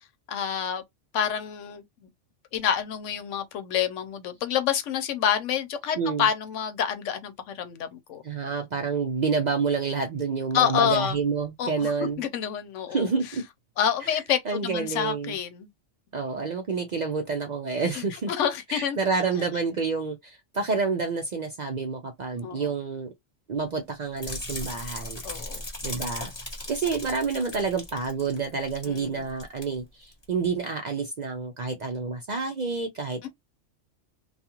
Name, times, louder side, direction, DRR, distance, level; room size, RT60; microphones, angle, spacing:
voice 1, 0.3-0.8 1.1-1.8 2.5-8.2 10.5-11.2 11.6-11.9 12.2-13.1 13.8-15.7 18.3-19.0 22.3-22.7 25.2-25.6 28.9-29.3 33.2-33.3, left 8 dB, 90° left, 1.0 m, -28 dB
voice 2, 6.0-6.3 8.2-12.2 12.9-13.4 14.0-14.2 14.5-15.4 16.1-18.3 18.7-23.1 23.5-25.2 25.8-26.3 26.7-33.3, right 4 dB, 55° right, 0.5 m, -28 dB
sound 1, 24.2-29.0 29.3-29.6 30.1-30.2, left 1 dB, 25° left, 1.0 m, -37 dB
2.4 x 2.4 x 2.8 m
omnidirectional pair, 1.2 m